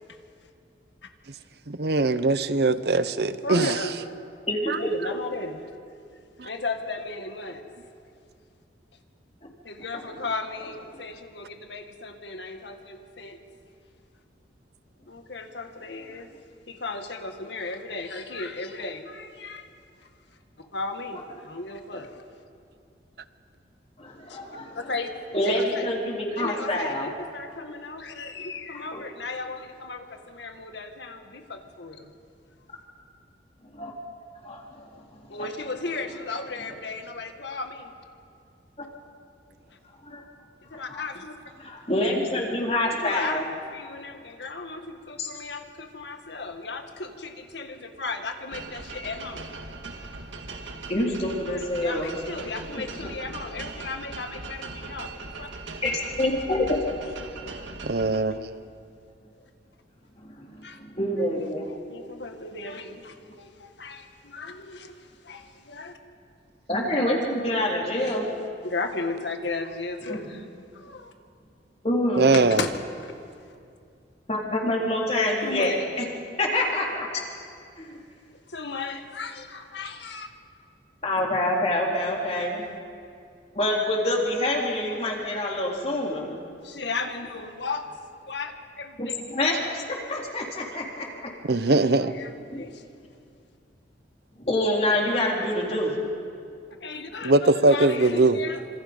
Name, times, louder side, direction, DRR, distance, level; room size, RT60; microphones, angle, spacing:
voice 1, 1.7-3.8 4.7-4.8 6.4-6.5 57.8-58.6 72.2-72.6 91.5-92.1 97.2-98.4, right 2 dB, 60° right, 13 dB, 0.8 m, -21 dB
voice 2, 3.3-3.9 4.8-5.6 6.4-7.7 9.6-13.4 15.1-16.3 16.7-19.7 20.7-22.2 24.3-24.4 24.7-25.9 26.4-32.1 35.3-37.9 40.7-41.5 42.9-49.5 51.5-55.1 55.4-55.5 60.6-60.8 61.9-65.9 68.0-68.2 68.6-70.4 70.7-71.1 72.2-72.7 73.0-73.2 75.4-75.8 78.5-80.3 81.8-81.9 86.6-87.9 88.3-89.1 91.6-92.8 96.8-98.7, left 3 dB, 70° left, 5 dB, 1.8 m, -35 dB
voice 3, 24.0-24.8 25.3-27.1 28.9-29.0 33.7-33.9 34.4-34.9 35.4-35.5 40.0-40.2 40.7-41.0 41.6-43.4 45.2-45.3 50.9-52.2 52.7-52.8 55.8-56.8 60.2-61.7 66.7-68.3 70.1-70.2 71.8-72.3 74.3-76.0 76.4-77.1 77.8-78.0 81.0-82.6 83.5-86.4 89.0-91.3 92.5-92.6 94.3-96.0, left 1 dB, 35° left, -2 dB, 3.9 m, -26 dB
sound 1, 48.5-58.2, right 3 dB, 85° right, 1.9 m, -39 dB
26.5 x 26.5 x 5.4 m, 2.4 s
head